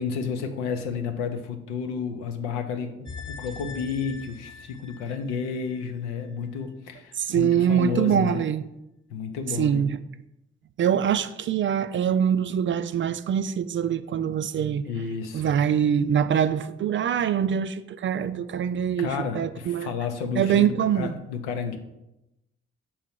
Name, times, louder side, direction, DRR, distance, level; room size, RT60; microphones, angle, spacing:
voice 1, 0.0-8.4 9.1-9.9 14.8-15.5 19.0-21.8, left 6 dB, 80° left, 0.7 m, -31 dB
sound 1, 3.1-6.3 6.6-6.7, left 4 dB, 15° left, 1.2 m, -42 dB
voice 2, 7.1-8.6 9.6-10.0 10.8-14.8 15.3-19.9 20.4-21.2, right 8 dB, 35° right, 0.4 m, -24 dB
5.8 x 4.6 x 4.5 m
hypercardioid pair, 40°, 35 cm